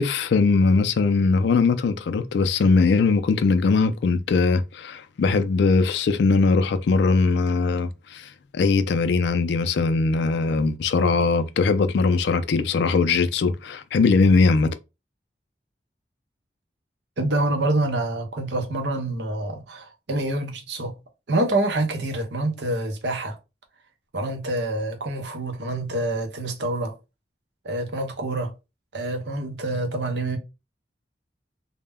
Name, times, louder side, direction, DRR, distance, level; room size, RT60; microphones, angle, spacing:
voice 1, 0.0-14.7, left 4 dB, 75° left, 0.3 m, -20 dB
voice 2, 17.2-20.9 21.3-23.4 24.1-26.9 27.6-28.5 28.9-30.4, right 2 dB, 75° right, 0.6 m, -26 dB
2.1 x 2.1 x 3.4 m
head